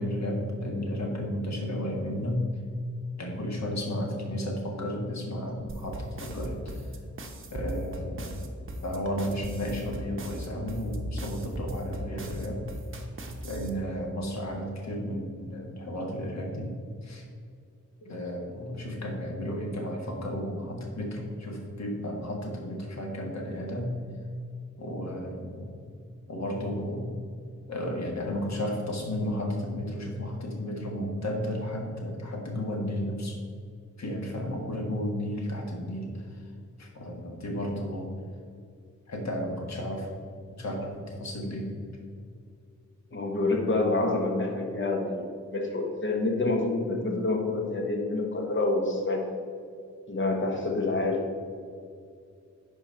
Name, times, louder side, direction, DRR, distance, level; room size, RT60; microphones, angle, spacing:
voice 1, 0.0-2.5 3.2-6.9 7.5-8.5 8.8-12.6 13.4-17.3 18.0-24.0 24.8-25.7 26.3-27.2 27.7-33.4 34.0-36.4 36.8-38.1 39.1-40.1 40.6-41.7, equal, 65° left, 0 dB, 1.6 m, -33 dB
sound 1, 5.7-13.7, right 1 dB, 45° right, 0.9 m, -37 dB
voice 2, 43.1-45.2 45.5-49.3 50.1-51.3, left 2 dB, 40° left, 1 dB, 1.3 m, -27 dB
11.0 x 4.5 x 4.4 m, 2.3 s
wide cardioid pair, 145°, 30 cm